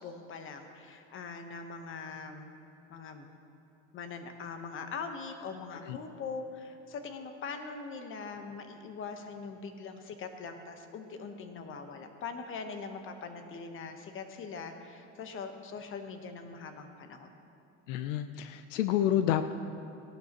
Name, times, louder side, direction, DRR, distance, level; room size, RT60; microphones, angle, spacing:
voice 1, 0.0-2.5 2.9-3.3 3.9-17.3, left 5 dB, 35° left, 6 dB, 1.1 m, -42 dB
voice 2, 17.9-19.5, left 11 dB, 80° left, 10 dB, 0.7 m, -29 dB
18.0 x 11.5 x 3.0 m, 2.8 s
supercardioid pair, 125°, 38 cm